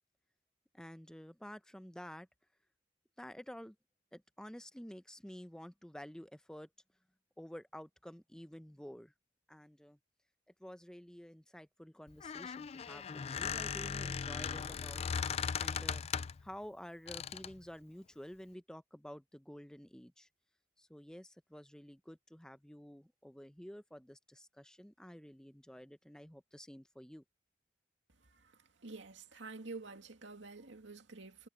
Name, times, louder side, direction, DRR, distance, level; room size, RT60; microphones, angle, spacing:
voice 1, 0.7-2.3 3.2-3.8 4.1-6.7 7.4-9.1 9.5-10.0 10.6-16.1 16.4-20.3 20.8-27.2, equal, 5° left, 0.7 m, -51 dB
Squeak, 12.1-16.5 17.1-17.6, left 6 dB, 35° left, 0.4 m, -38 dB
voice 2, 28.8-31.5, right 3 dB, 80° right, 2.4 m, -48 dB
head